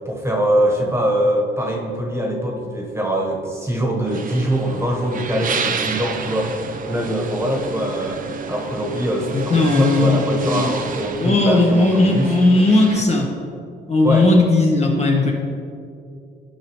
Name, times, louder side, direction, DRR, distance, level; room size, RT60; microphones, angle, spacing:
voice 1, 0.0-12.3 14.0-14.3, equal, 15° right, 0 dB, 1.3 m, -23 dB
sound 1, 4.0-13.0, right 5 dB, 45° right, 0.6 m, -30 dB
voice 2, 9.3-10.2 10.4-10.7 11.2-13.3 13.9-15.3, left 2 dB, 35° left, 0 dB, 1.0 m, -16 dB
11.5 x 4.9 x 3.1 m, 2.4 s
cardioid pair, 90°, 20 cm